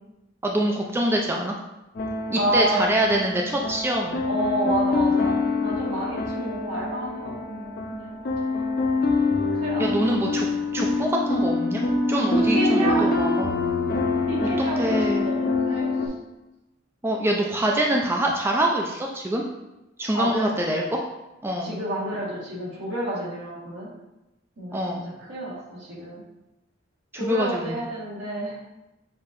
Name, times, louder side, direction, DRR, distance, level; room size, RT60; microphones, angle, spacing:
voice 1, 0.4-1.5 2.3-4.2 9.8-10.5 10.7-11.8 12.1-13.5 14.8-15.3 17.0-19.4 20.0-21.0 21.4-21.7 24.7-25.0 27.1-27.7, right 1 dB, 10° right, 0 dB, 0.3 m, -25 dB
sound 1, 1.9-16.1, left 3 dB, 50° left, 0.5 m, -25 dB
voice 2, 2.3-2.9 4.2-8.2 9.5-10.2 12.3-13.1 14.3-15.9 20.1-20.5 21.6-23.9 24.6-24.8 25.3-26.2 27.1-28.5, right 1 dB, 75° right, -6 dB, 1.5 m, -29 dB
6.6 x 2.7 x 2.5 m, 0.96 s
head